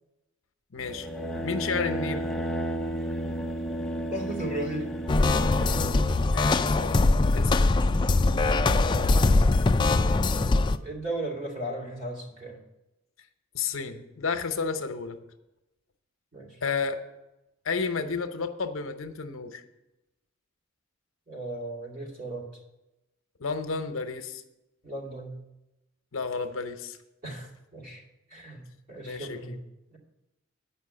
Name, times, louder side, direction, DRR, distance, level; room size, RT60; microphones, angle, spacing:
voice 1, 0.7-1.1 1.4-2.2 6.3-7.0 7.3-7.5 13.5-15.2 16.6-17.0 17.6-19.6 23.4-24.4 26.1-27.0 29.0-29.6, left 5 dB, 75° left, 8 dB, 0.8 m, -31 dB
sound 1, 0.8-6.1, equal, ahead, 0.7 m, -32 dB
voice 2, 4.1-4.9 8.5-9.5 10.8-12.6 16.3-16.6 21.3-22.5 24.8-25.4 27.2-28.0 28.3-29.6 29.9-30.0, right 1 dB, 40° right, -1 dB, 2.8 m, -36 dB
sound 2, 5.1-10.8, left 3 dB, 20° left, 0.3 m, -22 dB
9.1 x 5.6 x 7.7 m, 0.94 s
head